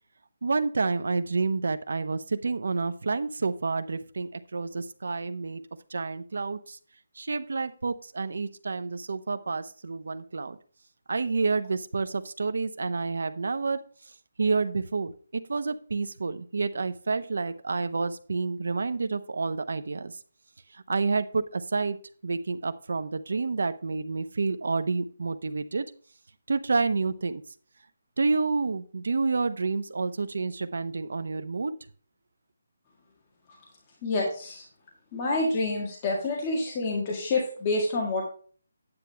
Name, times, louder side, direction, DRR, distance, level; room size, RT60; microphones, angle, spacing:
voice 1, 0.4-5.6 5.9-6.8 7.2-10.6 11.1-13.8 14.4-20.1 20.7-22.0 22.2-25.9 26.5-27.4 28.2-31.7, right 4 dB, 70° right, 11 dB, 0.9 m, -29 dB
voice 2, 34.0-34.6 35.1-38.2, left 2 dB, 20° left, -2 dB, 1.7 m, -28 dB
9.8 x 8.3 x 3.4 m, 0.40 s
hypercardioid pair, 175°, 0 cm